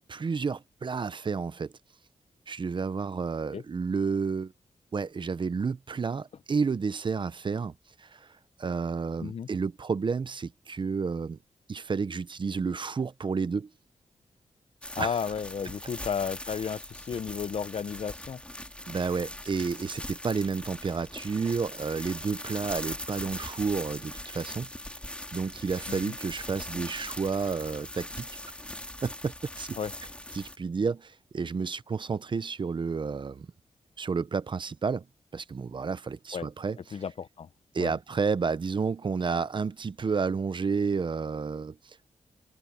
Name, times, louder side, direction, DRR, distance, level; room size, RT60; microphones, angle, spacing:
voice 1, 0.0-1.7 2.5-4.5 4.9-8.3 8.6-11.4 11.7-13.7 15.0-15.2 18.9-24.7 25.3-28.3 29.0-29.8 30.3-33.5 34.0-35.1 35.3-37.0 37.7-42.1, right 5 dB, 40° right, 0.7 m, -31 dB
sound 1, 14.8-30.6, left 1 dB, 10° left, 2.6 m, -41 dB
voice 2, 15.0-18.4 25.9-26.1 29.8-29.9 36.3-36.5 36.9-37.5 37.8-37.9, left 6 dB, 55° left, 0.7 m, -33 dB
open air
wide cardioid pair, 130°, 13 cm